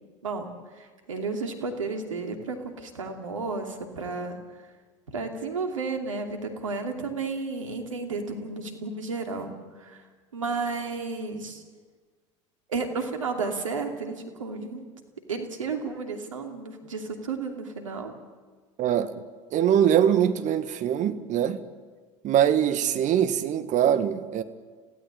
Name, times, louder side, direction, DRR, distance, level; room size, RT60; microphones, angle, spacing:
voice 1, 0.8-4.4 5.1-9.5 9.8-10.0 10.3-11.6 12.7-14.9 15.3-18.1, right 4 dB, 90° right, 4 dB, 2.7 m, -32 dB
voice 2, 18.8-19.2 19.5-21.6 22.2-24.4, right 9 dB, 50° right, 11 dB, 1.7 m, -23 dB
26.5 x 16.5 x 8.8 m, 1.5 s
hypercardioid pair, 70°, 16 cm